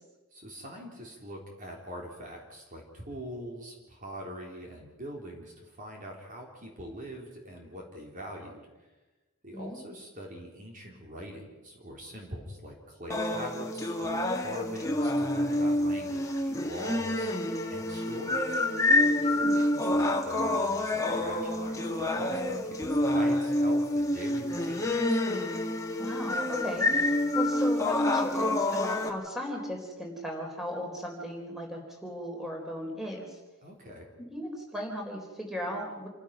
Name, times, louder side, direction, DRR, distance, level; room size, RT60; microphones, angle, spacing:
voice 1, 0.3-8.7 9.4-17.3 17.7-18.6 19.2-25.2 33.6-34.1, equal, 35° right, 0 dB, 3.8 m, -43 dB
sound 1, 13.1-29.1, left 1 dB, 15° left, 1.9 m, -28 dB
voice 2, 26.0-33.4 34.2-36.1, equal, ahead, 0 dB, 4.1 m, -37 dB
28.5 x 15.5 x 6.0 m, 1.2 s
head